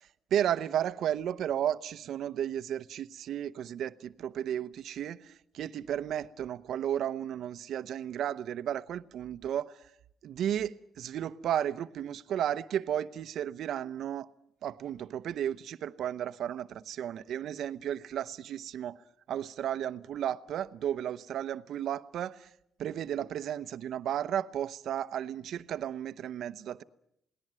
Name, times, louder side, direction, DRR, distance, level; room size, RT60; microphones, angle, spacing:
voice 1, 0.3-9.8 10.2-14.3 14.6-19.0 19.3-22.5 22.8-26.8, right 10 dB, 75° right, 0.9 m, -33 dB
28.0 x 19.0 x 7.6 m
cardioid pair, 90°, 0 cm